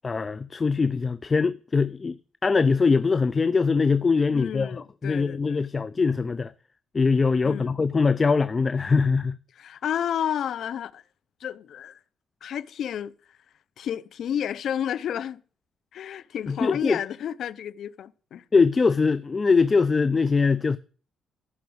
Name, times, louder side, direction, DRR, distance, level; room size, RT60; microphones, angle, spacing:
voice 1, 0.0-2.2 2.4-6.5 6.9-9.4 16.5-17.0 18.5-20.8, left 4 dB, 30° left, 0.5 m, -22 dB
voice 2, 4.3-5.6 7.4-7.8 9.5-11.0 11.4-12.0 12.4-13.4 13.8-15.4 15.9-18.4, left 9 dB, 70° left, 0.7 m, -31 dB
14.5 x 6.0 x 8.0 m
cardioid pair, 90°, 0 cm